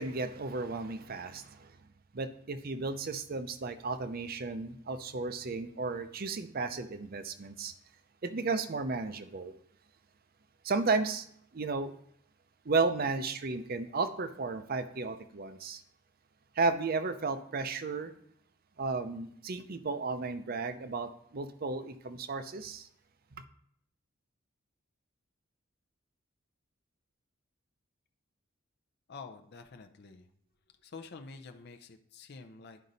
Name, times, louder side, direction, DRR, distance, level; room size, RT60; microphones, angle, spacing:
voice 1, 0.0-1.7 2.1-7.7 8.2-9.5 10.6-11.3 11.5-11.9 12.7-15.8 16.6-18.1 18.8-22.9, right 3 dB, 45° right, 10 dB, 0.5 m, -33 dB
voice 2, 29.1-30.3 30.8-32.8, left 4 dB, 50° left, 6 dB, 0.5 m, -48 dB
11.0 x 5.2 x 4.0 m, 0.68 s
head